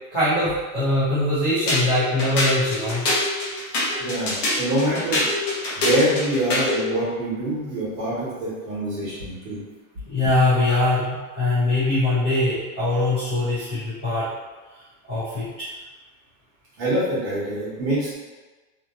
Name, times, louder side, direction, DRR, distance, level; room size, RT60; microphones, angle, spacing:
voice 1, 0.1-3.1 10.1-14.3 15.1-15.5, left 2 dB, 15° left, -18 dB, 0.4 m, -22 dB
sound 1, 1.7-6.8, left 2 dB, 35° left, 0.8 m, -24 dB
voice 2, 4.0-5.3 5.7-9.6 16.8-18.1, right 1 dB, 45° right, -9 dB, 1.4 m, -25 dB
2.9 x 2.5 x 2.4 m, 1.2 s
supercardioid pair, 180°, 43 cm